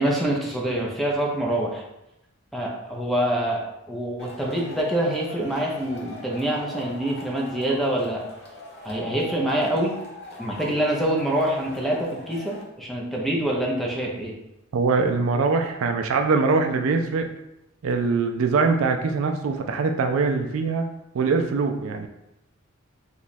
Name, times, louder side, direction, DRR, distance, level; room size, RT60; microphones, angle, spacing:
voice 1, 0.0-1.8 2.5-8.3 8.8-9.9 10.4-14.3, right 1 dB, ahead, -2 dB, 0.5 m, -25 dB
Male speech man speaking / Shout / Clapping, 4.2-12.6, left 1 dB, 50° left, 0.7 m, -41 dB
voice 2, 14.7-17.3 17.8-20.8 21.1-22.1, right 4 dB, 75° right, 5 dB, 0.4 m, -22 dB
3.0 x 2.3 x 4.1 m, 0.86 s
head